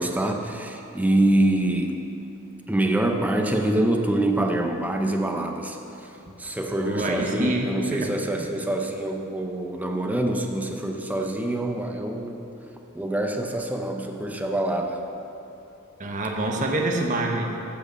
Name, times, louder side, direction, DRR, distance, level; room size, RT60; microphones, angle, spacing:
voice 1, 0.0-2.0 2.7-12.5 12.9-15.0, right 1 dB, 5° right, 3 dB, 0.6 m, -25 dB
voice 2, 6.8-8.1 16.0-17.4, right 2 dB, 35° right, 1 dB, 0.9 m, -26 dB
8.5 x 6.2 x 7.4 m, 2.9 s
head